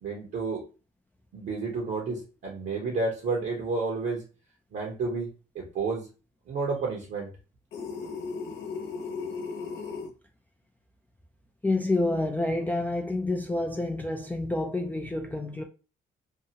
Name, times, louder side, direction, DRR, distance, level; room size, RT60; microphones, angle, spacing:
voice 1, 0.0-0.6 1.3-4.2 4.7-5.3 5.5-6.1 6.5-7.3, right 4 dB, 60° right, 1.0 m, -30 dB
sound 1, 7.7-10.1, left 5 dB, 75° left, 0.9 m, -36 dB
voice 2, 11.6-15.6, left 2 dB, 10° left, 0.3 m, -28 dB
2.7 x 2.3 x 2.8 m
cardioid pair, 95°, 20 cm